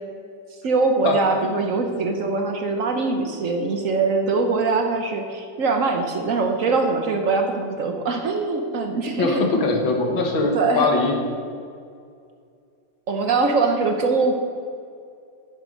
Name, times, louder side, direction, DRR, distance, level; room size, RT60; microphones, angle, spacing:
voice 1, 0.6-9.4 10.5-10.9 13.1-14.3, right 3 dB, 60° right, 4 dB, 0.9 m, -22 dB
voice 2, 9.2-11.1, left 3 dB, 65° left, 2 dB, 2.0 m, -21 dB
9.6 x 8.1 x 5.2 m, 2.3 s
omnidirectional pair, 2.4 m